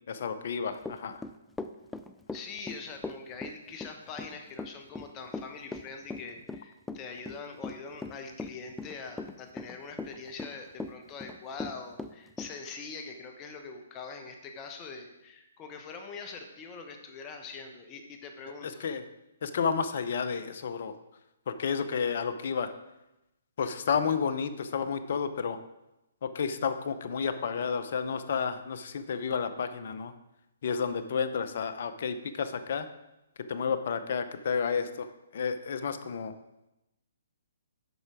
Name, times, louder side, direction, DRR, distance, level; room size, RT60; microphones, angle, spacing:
voice 1, 0.1-1.2 18.6-19.0 19.4-20.9 21.5-22.7 23.6-25.6 26.2-30.1 30.6-32.9 33.5-36.3, left 6 dB, 55° left, 11 dB, 0.7 m, -31 dB
Run / Walk footsteps, 0.8-12.5, left 3 dB, 5° left, 0.4 m, -39 dB
voice 2, 2.3-18.8, left 4 dB, 25° left, 5 dB, 1.0 m, -43 dB
8.0 x 5.6 x 4.9 m, 0.94 s
hypercardioid pair, 135°, 0 cm